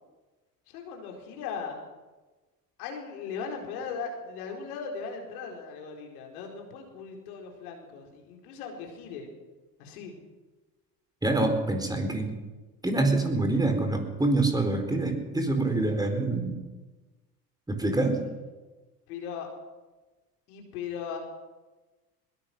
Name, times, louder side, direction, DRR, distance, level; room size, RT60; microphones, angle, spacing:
voice 1, 0.7-1.8 2.8-9.3 9.8-10.1 19.1-19.5 20.5-21.2, left 6 dB, 65° left, 2 dB, 4.6 m, -38 dB
voice 2, 11.2-12.3 12.8-16.5 17.7-18.2, right 2 dB, 10° right, 5 dB, 4.3 m, -26 dB
22.0 x 20.5 x 6.1 m, 1.2 s
figure-of-eight pair, 70°, 47 cm